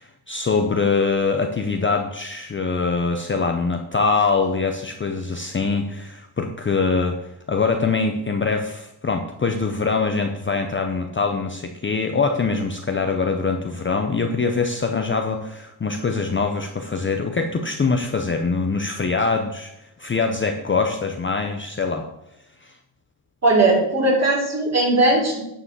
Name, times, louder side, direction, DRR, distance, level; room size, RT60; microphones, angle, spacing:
voice 1, 0.0-19.7 20.0-22.1 22.6-22.8, left 4 dB, 25° left, 4 dB, 0.7 m, -23 dB
voice 2, 23.4-25.4, right 2 dB, 30° right, -2 dB, 3.5 m, -18 dB
9.8 x 4.8 x 7.4 m, 0.83 s
wide cardioid pair, 140°, 49 cm